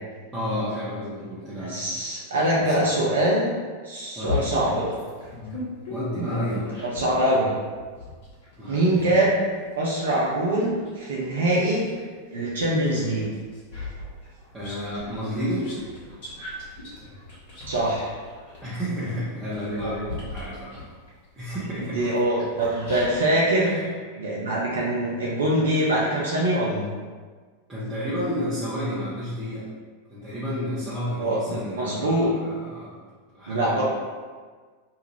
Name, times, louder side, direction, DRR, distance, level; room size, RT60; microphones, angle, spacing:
voice 1, 0.3-1.9 2.6-2.9 4.1-4.5 5.9-6.7 8.6-8.8 14.5-15.7 18.6-20.8 21.4-22.0 23.6-23.9 27.7-29.7 30.1-32.9 33.3-33.8, equal, 15° right, -11 dB, 0.7 m, -31 dB
voice 2, 1.6-3.6 3.8-4.9 6.8-7.5 8.7-9.4 9.8-11.9 12.3-13.3 17.7-18.1 19.8-19.9 21.8-23.8 24.1-26.8 31.2-32.3 33.5-33.8, right 1 dB, 65° right, -5 dB, 0.5 m, -23 dB
sound 1, 4.2-7.2 7.7-12.1 12.6-23.3, left 3 dB, 50° left, 1.0 m, -38 dB
2.6 x 2.4 x 3.1 m, 1.5 s
figure-of-eight pair, 90°, 0 cm